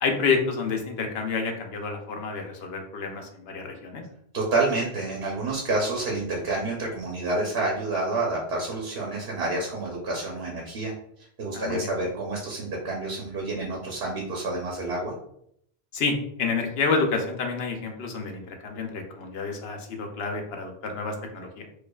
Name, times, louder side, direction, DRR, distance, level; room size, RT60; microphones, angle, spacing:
voice 1, 0.0-4.0 11.5-11.9 15.9-21.7, left 4 dB, 75° left, 3 dB, 0.9 m, -29 dB
voice 2, 4.3-15.1, right 2 dB, 70° right, -2 dB, 1.0 m, -29 dB
4.7 x 2.4 x 2.3 m, 0.70 s
omnidirectional pair, 1.1 m